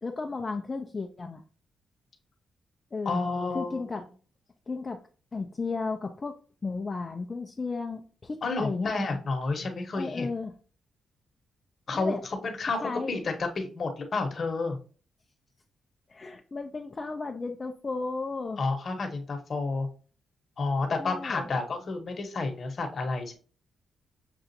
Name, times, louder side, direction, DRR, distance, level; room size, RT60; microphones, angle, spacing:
voice 1, 0.0-1.4 2.9-3.2 3.5-4.0 4.7-5.0 5.3-6.3 6.6-8.9 9.9-10.5 11.9-12.2 12.8-13.1 16.1-18.6 21.0-21.5, left 3 dB, 30° left, 4 dB, 0.4 m, -34 dB
voice 2, 3.0-3.9 8.4-10.3 11.9-14.8 18.6-19.9 20.6-23.3, left 3 dB, 50° left, 4 dB, 1.0 m, -30 dB
6.8 x 2.4 x 2.7 m, 0.39 s
cardioid pair, 95°, 0 cm